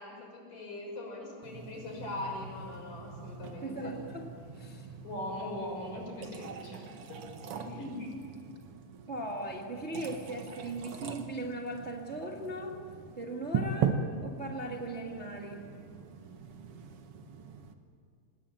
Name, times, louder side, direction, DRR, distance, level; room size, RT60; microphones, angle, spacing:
voice 1, 0.0-3.9 5.0-6.8 7.1-7.2 7.5-8.1, left 1 dB, 70° left, 0 dB, 8.0 m, -40 dB
sound 1, 1.4-17.7, right 6 dB, 55° right, 1.9 m, -40 dB
voice 2, 3.6-4.3 4.5-4.9 7.7-7.8 9.1-12.8 13.2-15.7, right 1 dB, 25° right, 0 dB, 1.6 m, -38 dB
26.5 x 20.0 x 9.2 m, 2.2 s
omnidirectional pair, 3.8 m